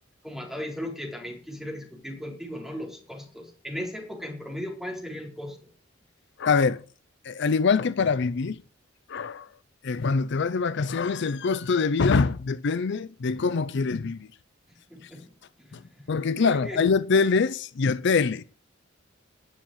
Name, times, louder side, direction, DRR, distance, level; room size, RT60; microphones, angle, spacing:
voice 1, 0.2-5.7 14.9-15.3 15.6-15.9 16.4-16.8, equal, ahead, 4.3 m, -37 dB
voice 2, 6.4-6.8 7.2-8.6 9.1-9.5 9.8-14.3 15.0-15.1 15.7-15.8 16.1-18.4, left 4 dB, 60° left, 0.5 m, -24 dB
11.0 x 7.2 x 8.9 m
head